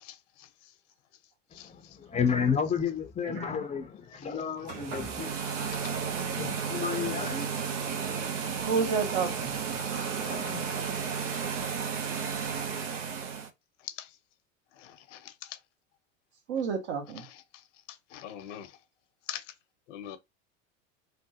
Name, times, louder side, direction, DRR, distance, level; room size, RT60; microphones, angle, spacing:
voice 1, 2.1-5.3 6.1-7.5 10.0-10.7, left 7 dB, 20° left, 0.5 m, -31 dB
voice 2, 3.2-3.7 8.6-9.6 16.5-17.2, right 5 dB, 65° right, 1.4 m, -30 dB
sound 1, 4.6-13.5, right 6 dB, 85° right, 0.8 m, -33 dB
voice 3, 14.8-15.2 18.1-18.7 19.3-19.4 19.9-20.2, left 11 dB, 80° left, 0.8 m, -41 dB
3.3 x 2.1 x 2.8 m
hypercardioid pair, 105°, 36 cm